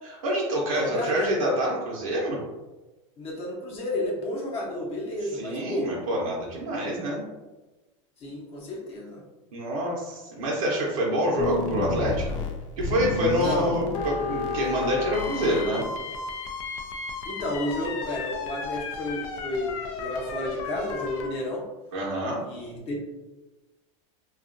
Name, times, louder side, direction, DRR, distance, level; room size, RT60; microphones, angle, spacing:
voice 1, 0.0-2.4 5.3-7.2 9.5-12.4 12.8-15.8 21.9-22.4, equal, 85° right, -4 dB, 0.7 m, -27 dB
voice 2, 0.7-1.3 3.2-5.9 8.2-9.2 10.4-10.5 13.4-13.8 17.2-21.6 22.4-23.0, left 1 dB, 35° left, -2 dB, 0.8 m, -31 dB
sound 1, 11.4-21.3, left 4 dB, 75° left, 0.5 m, -32 dB
2.7 x 2.3 x 2.5 m, 1.1 s
supercardioid pair, 125°, 17 cm